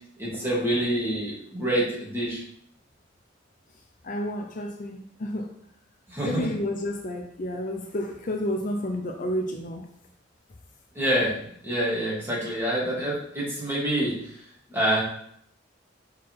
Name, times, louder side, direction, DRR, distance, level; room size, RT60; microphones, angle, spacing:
voice 1, 0.2-2.4 6.1-6.5 10.9-11.4 11.6-14.1 14.7-15.0, right 1 dB, 15° right, -6 dB, 2.5 m, -26 dB
voice 2, 4.0-5.5 6.2-9.9, left 1 dB, 45° left, 3 dB, 0.6 m, -30 dB
5.9 x 4.1 x 4.7 m, 0.66 s
head